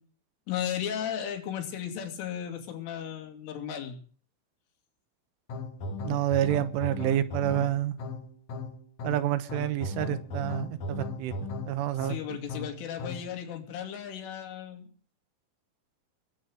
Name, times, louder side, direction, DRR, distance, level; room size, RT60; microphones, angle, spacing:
voice 1, 0.5-4.0 12.0-14.9, left 9 dB, 75° left, 3 dB, 5.2 m, -35 dB
sound 1, 5.5-13.4, left 2 dB, 55° left, 2.2 m, -37 dB
voice 2, 6.0-8.0 9.0-11.3 11.7-12.2, right 13 dB, 80° right, 13 dB, 3.6 m, -28 dB
21.0 x 9.4 x 6.4 m, 0.43 s
omnidirectional pair, 5.8 m